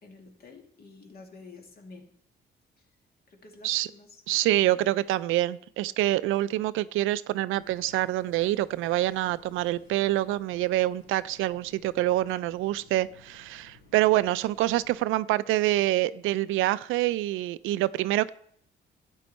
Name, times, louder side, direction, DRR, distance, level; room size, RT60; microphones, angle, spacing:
voice 1, 0.0-2.1 2.8-2.9 3.3-5.1, left 3 dB, 50° left, 3 dB, 2.1 m, -50 dB
voice 2, 4.3-18.3, right 15 dB, 90° right, 16 dB, 0.4 m, -26 dB
sound 1, 7.5-15.0, left 3 dB, 90° left, 5.6 m, -57 dB
12.0 x 8.9 x 4.2 m, 0.66 s
cardioid pair, 90°, 20 cm